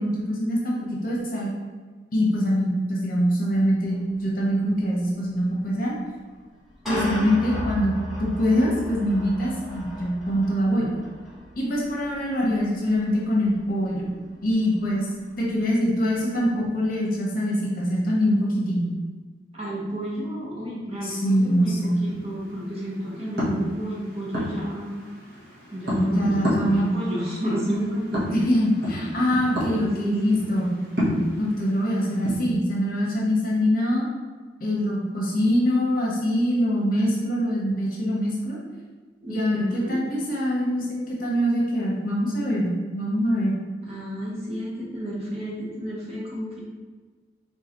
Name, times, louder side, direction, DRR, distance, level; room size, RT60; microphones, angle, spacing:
voice 1, 0.0-1.5 2.1-6.0 6.9-7.9 8.2-10.9 11.6-14.1 14.4-15.1 15.4-18.9 21.0-22.0 25.9-27.0 28.2-30.7 31.4-34.1 34.6-38.6 39.3-43.6, equal, 45° left, -4 dB, 0.9 m, -24 dB
sound 1, 3.5-3.6 3.9-4.0 5.4-5.5 6.5-15.6, equal, ahead, 1.2 m, -37 dB
voice 2, 19.5-24.9 25.7-28.5 29.7-30.2 39.2-40.0 43.8-46.6, equal, 30° right, -5 dB, 0.9 m, -31 dB
sound 2, 21.2-32.4, equal, 55° right, 1.3 m, -31 dB
3.8 x 3.6 x 3.0 m, 1.5 s
head